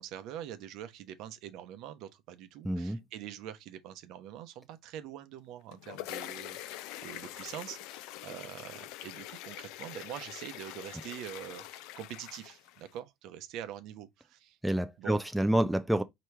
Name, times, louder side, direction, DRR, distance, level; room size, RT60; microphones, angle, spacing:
voice 1, 0.0-14.6 15.0-15.2, right 10 dB, 60° right, 0.8 m, -44 dB
voice 2, 2.6-3.0 14.6-16.0, right 1 dB, 5° right, 0.4 m, -28 dB
sound 1, 5.5-13.0, left 14 dB, 70° left, 0.4 m, -44 dB
4.6 x 3.0 x 3.2 m
supercardioid pair, 120°, 0 cm